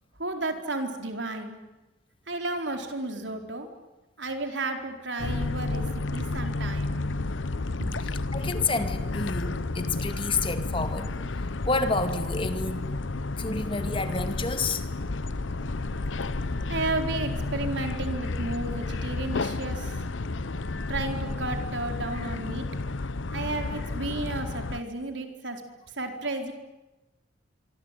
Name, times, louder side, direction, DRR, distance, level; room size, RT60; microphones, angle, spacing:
voice 1, 0.2-1.6 2.3-3.7 4.2-7.2 7.7-7.9 13.1-13.4 16.4-20.0 20.9-22.7 23.3-25.6 25.9-26.5, right 2 dB, 70° right, 5 dB, 4.4 m, -33 dB
sound 1, 5.2-24.8, left 2 dB, 80° left, 0.9 m, -31 dB
voice 2, 8.3-11.1 11.6-12.9 13.4-14.9, left 3 dB, 25° left, 8 dB, 2.3 m, -29 dB
sound 2, 15.2-21.2, left 1 dB, 20° right, 7.1 m, -52 dB
25.0 x 25.0 x 9.2 m, 1.1 s
head